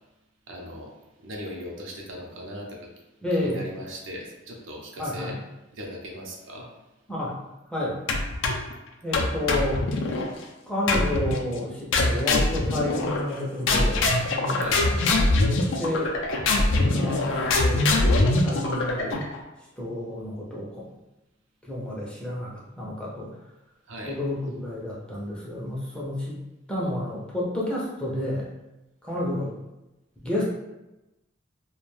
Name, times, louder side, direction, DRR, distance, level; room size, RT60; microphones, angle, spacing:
voice 1, 0.5-0.9 1.2-2.9 3.4-5.4 5.7-6.7 14.6-14.8 23.9-24.2, equal, 70° right, -1 dB, 0.6 m, -38 dB
voice 2, 3.2-3.6 5.0-5.3 7.1-7.3 7.7-8.0 9.0-9.8 10.7-16.1 16.7-17.9 18.4-19.2 19.8-20.8 21.6-23.3 24.0-26.4 26.7-28.5 29.0-29.5 30.2-30.4, left 1 dB, 5° left, -6 dB, 0.5 m, -30 dB
sound 1, 8.1-8.7 9.1-10.3 10.9-11.4 11.9-13.4 13.7-19.4, left 2 dB, 65° left, 0.4 m, -23 dB
2.4 x 2.2 x 3.1 m, 1.0 s
head